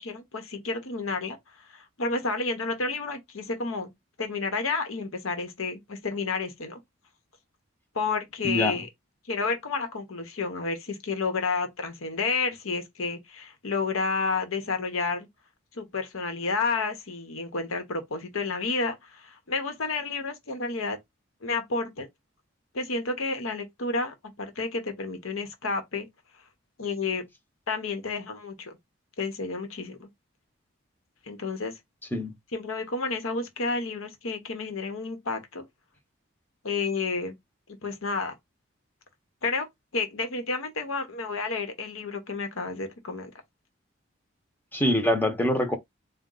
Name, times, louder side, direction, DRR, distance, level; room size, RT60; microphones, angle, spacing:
voice 1, 0.0-1.4 1.7-3.9 4.2-6.8 7.9-8.9 9.3-15.3 15.7-21.0 21.4-22.1 22.7-26.1 26.8-27.3 27.7-28.8 29.2-30.1 31.3-31.7 32.5-35.6 36.6-37.3 37.8-38.3 39.4-39.7 39.9-43.3, left 4 dB, 90° left, 1.0 m, -30 dB
voice 2, 8.4-8.8 32.1-32.3 44.7-45.8, left 1 dB, 10° left, 0.6 m, -24 dB
4.1 x 2.2 x 3.7 m
head